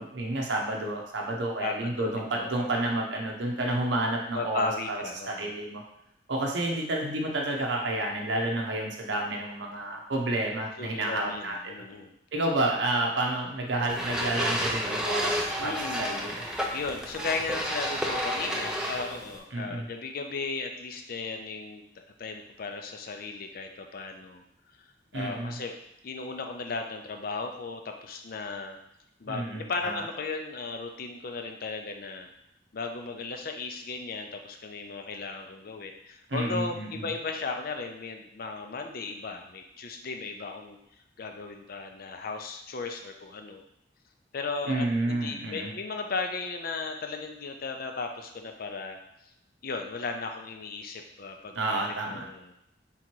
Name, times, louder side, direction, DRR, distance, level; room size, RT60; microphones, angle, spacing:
voice 1, 0.0-5.8 6.3-11.6 12.3-16.4 19.5-19.8 25.1-25.5 29.3-30.0 36.3-37.1 44.7-45.7 51.5-52.3, right 2 dB, 85° right, -1 dB, 0.7 m, -30 dB
voice 2, 1.6-2.5 4.3-5.5 10.8-12.1 15.6-16.2 16.7-24.4 24.8-25.7 26.0-28.8 29.2-32.3 32.7-40.8 41.2-43.6 44.3-49.0 49.6-51.8 52.1-52.5, left 4 dB, 55° left, 4 dB, 0.5 m, -36 dB
sound 1, 13.9-19.4, equal, 5° right, 0.4 m, -31 dB
3.8 x 2.9 x 4.4 m, 0.81 s
head